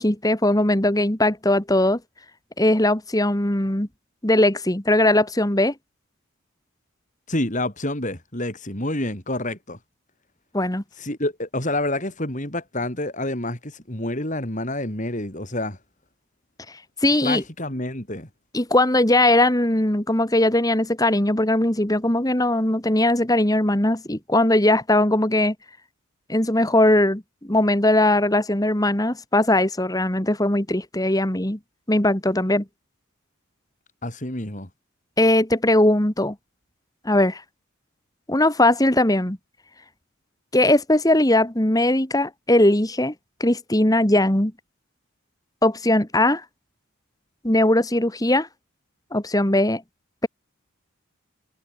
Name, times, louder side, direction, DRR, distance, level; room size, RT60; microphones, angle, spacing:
voice 1, 0.0-2.0 2.6-3.9 4.2-5.7 10.5-10.8 17.0-17.4 18.5-25.6 26.3-31.6 31.9-32.7 35.2-36.4 37.1-37.4 38.3-39.4 40.5-43.1 43.4-44.5 45.6-46.4 47.4-48.5 49.1-49.8, left 1 dB, 15° left, 1.8 m, -19 dB
voice 2, 7.3-9.8 11.0-15.8 17.2-18.3 34.0-34.7, left 1 dB, 35° left, 4.9 m, -28 dB
head